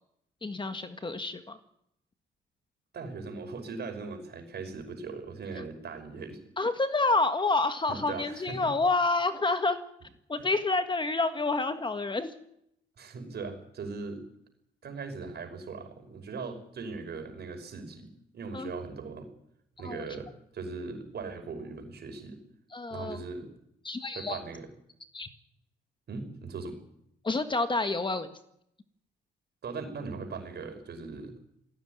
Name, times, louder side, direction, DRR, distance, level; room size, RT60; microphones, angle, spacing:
voice 1, 0.4-1.6 6.6-9.8 10.3-12.3 18.5-18.7 19.8-20.0 22.7-23.2 23.8-24.4 25.1-25.3 27.2-28.4, left 3 dB, 25° left, 8 dB, 1.7 m, -28 dB
voice 2, 2.9-6.4 7.9-8.8 10.4-10.5 13.0-14.2 14.8-19.3 19.8-22.4 22.9-23.5 24.1-24.7 26.1-26.8 29.6-31.4, right 4 dB, 55° right, 5 dB, 5.6 m, -39 dB
19.5 x 16.0 x 9.6 m, 0.77 s
cardioid pair, 90°, 20 cm